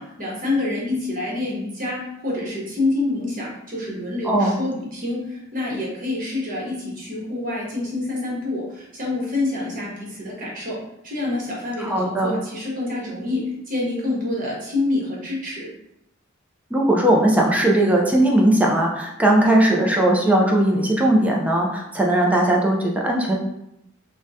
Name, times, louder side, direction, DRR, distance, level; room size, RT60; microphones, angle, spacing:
voice 1, 0.0-10.8 11.0-15.7, left 2 dB, 40° right, -4 dB, 1.0 m, -27 dB
voice 2, 4.2-4.5 11.8-12.3 16.7-23.4, right 1 dB, 5° right, -1 dB, 0.4 m, -18 dB
3.5 x 2.2 x 2.7 m, 0.83 s
head